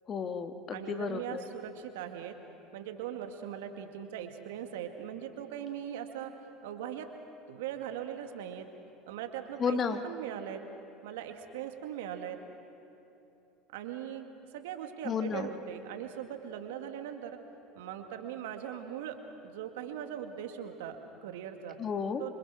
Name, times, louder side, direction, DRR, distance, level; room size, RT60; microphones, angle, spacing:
voice 1, 0.1-1.4 9.6-10.0 15.0-15.5 21.8-22.2, left 6 dB, 40° left, 8 dB, 1.7 m, -32 dB
voice 2, 0.7-2.4 2.7-6.3 6.6-7.1 7.5-8.7 9.1-10.6 11.0-12.4 13.7-14.3 14.5-17.4 17.7-19.2 19.4-21.8 22.2-22.4, right 9 dB, 75° right, 6 dB, 2.0 m, -40 dB
27.0 x 25.5 x 6.2 m, 3.0 s
hypercardioid pair, 75°, 0 cm